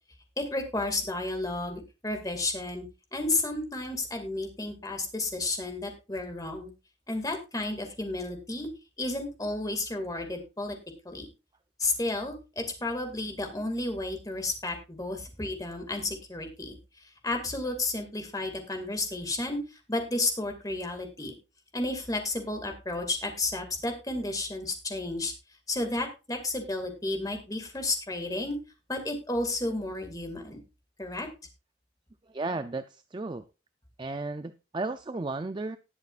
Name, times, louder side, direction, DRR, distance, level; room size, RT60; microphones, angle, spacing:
voice 1, 0.4-2.8 3.1-6.7 7.1-8.7 9.0-10.8 11.0-11.3 11.8-21.3 21.7-25.3 25.7-28.6 28.9-30.6 31.0-31.3, left 2 dB, 20° left, 4 dB, 2.2 m, -32 dB
voice 2, 32.3-33.4 34.0-35.8, right 3 dB, 25° right, 10 dB, 0.4 m, -34 dB
19.5 x 6.6 x 2.5 m, 0.29 s
head